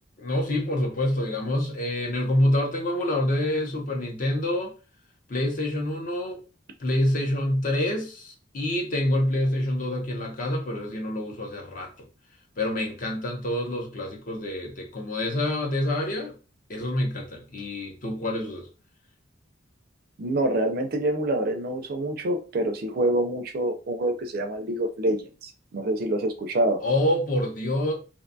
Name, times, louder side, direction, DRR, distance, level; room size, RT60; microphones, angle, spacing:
voice 1, 0.2-4.7 5.3-6.4 6.8-11.9 12.6-16.4 16.7-18.7 26.8-27.9, left 1 dB, 45° left, 0.6 m, -27 dB
voice 2, 20.2-26.8, right 1 dB, 50° right, 0.4 m, -26 dB
2.6 x 2.2 x 2.6 m
head